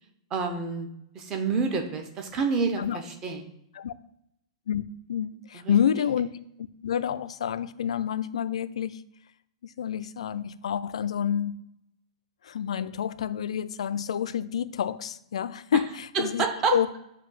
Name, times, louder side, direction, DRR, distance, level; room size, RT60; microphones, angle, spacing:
voice 1, 0.3-0.9 1.1-3.4 5.5-6.1 16.1-16.8, right 4 dB, 15° right, 5 dB, 0.5 m, -28 dB
voice 2, 5.1-6.3 6.8-9.0 9.8-11.7 12.4-16.5 16.7-16.9, left 8 dB, 75° left, 15 dB, 0.3 m, -28 dB
7.6 x 2.6 x 5.4 m, 0.78 s
hypercardioid pair, 180°, 3 cm